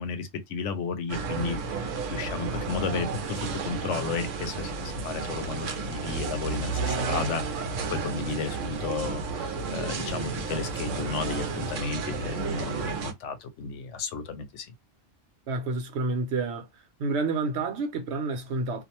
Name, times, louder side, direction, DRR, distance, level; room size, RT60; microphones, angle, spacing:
voice 1, 0.0-14.7, left 5 dB, 80° left, 0.9 m, -33 dB
sound 1, 1.1-13.1, right 4 dB, 90° right, 0.9 m, -32 dB
voice 2, 15.5-16.7 17.0-18.8, right 3 dB, 70° right, 1.0 m, -29 dB
2.5 x 2.1 x 2.8 m
omnidirectional pair, 1.3 m